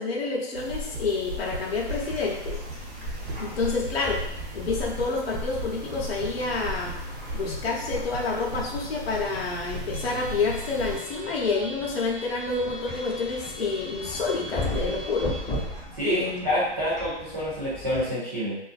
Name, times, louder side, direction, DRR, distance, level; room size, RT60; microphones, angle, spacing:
voice 1, 0.0-2.6 3.4-4.2 4.5-6.9 7.3-15.3 16.0-16.4, left 4 dB, 60° left, -3 dB, 0.8 m, -28 dB
sound 1, 0.5-11.0, right 1 dB, 45° right, 1.1 m, -36 dB
sound 2, 1.7-18.1, left 1 dB, 5° right, 1.1 m, -38 dB
voice 2, 15.9-18.6, equal, 25° right, -11 dB, 0.5 m, -27 dB
2.5 x 2.4 x 2.4 m, 0.79 s
hypercardioid pair, 165°, 34 cm